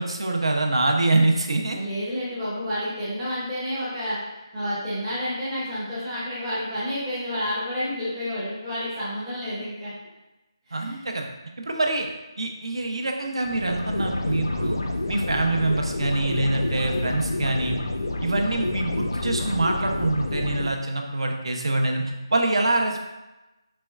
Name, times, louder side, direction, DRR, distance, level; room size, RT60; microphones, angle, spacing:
voice 1, 0.0-1.8 10.7-11.3 11.6-12.1 12.4-14.8 15.1-17.8 18.2-23.0, right 2 dB, 75° right, 2 dB, 0.6 m, -25 dB
voice 2, 1.7-4.2 4.5-9.9 10.7-11.0, equal, 5° right, -13 dB, 0.5 m, -30 dB
sound 1, 13.4-20.7, left 2 dB, 50° left, 0.4 m, -28 dB
4.2 x 3.1 x 2.3 m, 1.0 s
figure-of-eight pair, 180°, 3 cm